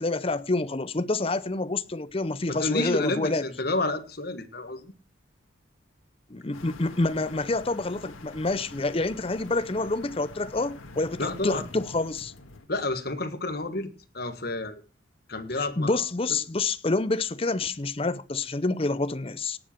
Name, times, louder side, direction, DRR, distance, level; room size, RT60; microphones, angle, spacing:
voice 1, 0.0-3.5 6.3-12.3 15.6-19.6, left 2 dB, 30° left, 0.6 m, -28 dB
voice 2, 2.5-4.9 11.2-11.6 12.7-13.9 14.1-14.8 15.3-16.0, left 2 dB, 50° left, 1.5 m, -30 dB
sound 1, 6.5-12.7, left 2 dB, 90° left, 1.8 m, -45 dB
17.5 x 7.6 x 4.4 m
head